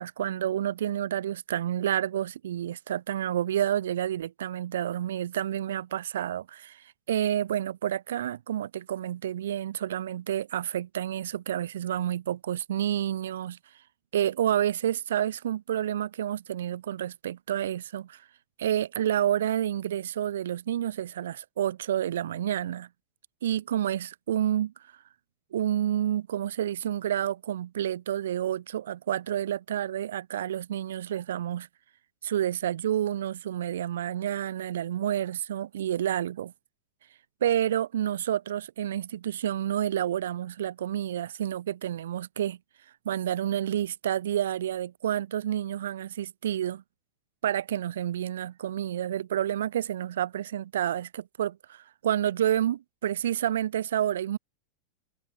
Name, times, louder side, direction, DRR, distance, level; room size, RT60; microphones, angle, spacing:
voice 1, 0.0-13.6 14.1-18.2 18.6-22.9 23.4-24.7 25.5-31.7 32.2-36.5 37.4-42.6 43.0-46.8 47.4-54.4, right 11 dB, 60° right, 2.9 m, -29 dB
figure-of-eight pair, 90°, 0 cm